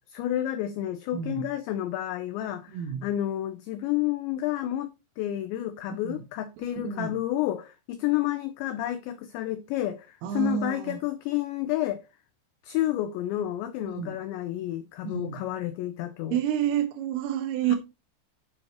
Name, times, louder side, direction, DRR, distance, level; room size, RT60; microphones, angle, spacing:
voice 1, 0.1-12.0 12.6-16.4, left 13 dB, 85° left, 2.5 m, -30 dB
voice 2, 1.1-1.5 2.7-3.1 6.0-6.2 6.8-7.2 10.2-11.0 13.8-14.2 15.1-15.5 16.3-17.8, right 9 dB, 80° right, 3.6 m, -29 dB
8.9 x 8.8 x 3.0 m
omnidirectional pair, 5.9 m